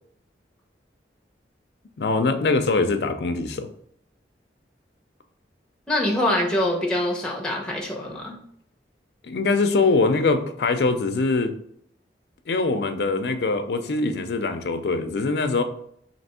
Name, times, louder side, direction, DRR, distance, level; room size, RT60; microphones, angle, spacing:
voice 1, 2.0-3.7 9.2-11.5 12.5-15.6, left 3 dB, 65° left, 8 dB, 0.4 m, -23 dB
voice 2, 5.9-8.4, left 1 dB, 5° left, -1 dB, 0.8 m, -24 dB
3.3 x 2.9 x 4.2 m, 0.70 s
head